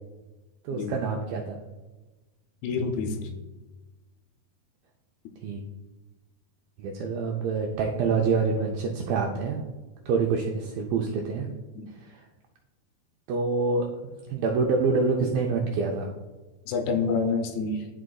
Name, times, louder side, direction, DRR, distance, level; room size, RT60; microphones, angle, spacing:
voice 1, 0.6-1.6 5.4-5.6 6.8-9.6 10.1-11.5 11.9-12.2 13.3-16.1, right 4 dB, 85° right, 1 dB, 2.0 m, -26 dB
voice 2, 2.6-3.3 11.8-11.9 16.7-17.9, left 4 dB, 80° left, 4 dB, 2.5 m, -28 dB
11.0 x 4.9 x 2.3 m, 1.2 s
omnidirectional pair, 4.7 m